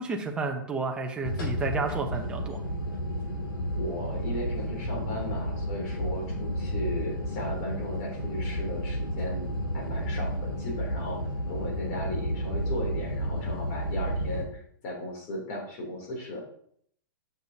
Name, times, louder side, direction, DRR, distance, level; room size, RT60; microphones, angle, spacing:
voice 1, 0.0-2.6, right 4 dB, 10° right, 2 dB, 0.7 m, -31 dB
sound 1, 1.2-14.4, equal, 90° left, 2.7 m, -31 dB
voice 2, 3.7-9.5 9.7-11.2 11.5-16.4, left 1 dB, 40° left, 0 dB, 3.1 m, -36 dB
8.1 x 6.7 x 2.8 m, 0.65 s
hypercardioid pair, 150°, 12 cm